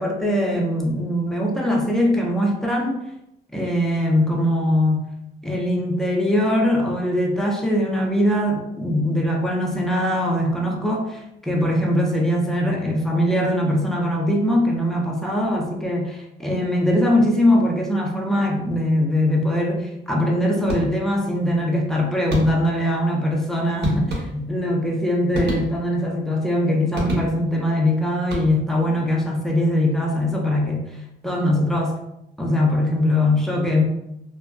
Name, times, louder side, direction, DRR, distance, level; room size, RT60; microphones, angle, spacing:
voice 1, 0.0-3.0 3.5-5.0 5.4-30.9 31.2-31.9 32.4-33.8, left 1 dB, ahead, -1 dB, 0.5 m, -21 dB
sound 1, 20.7-21.2 22.3-22.9 23.8-24.7 25.3-26.1 26.9-27.7 28.2-28.9, right 2 dB, 60° right, 0.8 m, -29 dB
2.4 x 2.2 x 2.3 m, 0.82 s
cardioid pair, 90°, 20 cm